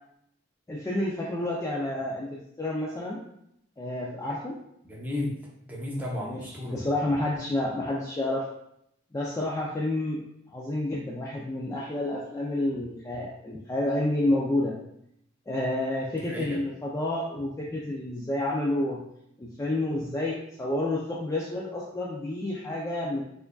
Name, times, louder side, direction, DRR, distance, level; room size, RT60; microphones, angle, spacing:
voice 1, 0.7-3.2 3.8-4.6 6.2-8.5 9.1-10.2 10.5-14.8 15.5-19.0 19.4-23.2, left 1 dB, 15° left, -4 dB, 0.3 m, -29 dB
voice 2, 4.8-5.3 5.7-6.8 16.1-16.6, left 1 dB, 10° right, -4 dB, 0.7 m, -33 dB
4.6 x 2.5 x 2.2 m, 0.76 s
head